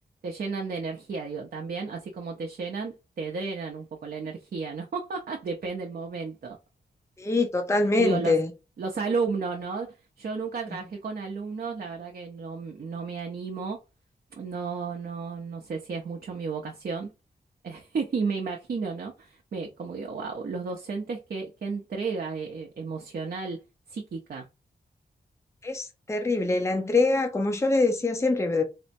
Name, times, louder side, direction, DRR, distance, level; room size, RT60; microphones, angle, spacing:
voice 1, 0.2-6.6 8.0-8.3 8.8-13.8 14.3-17.1 17.6-23.6 23.9-24.5, right 4 dB, 65° right, 0.6 m, -33 dB
voice 2, 7.2-8.5 25.6-28.6, left 3 dB, 15° left, 0.6 m, -24 dB
4.3 x 2.1 x 2.6 m
wide cardioid pair, 95°, 17 cm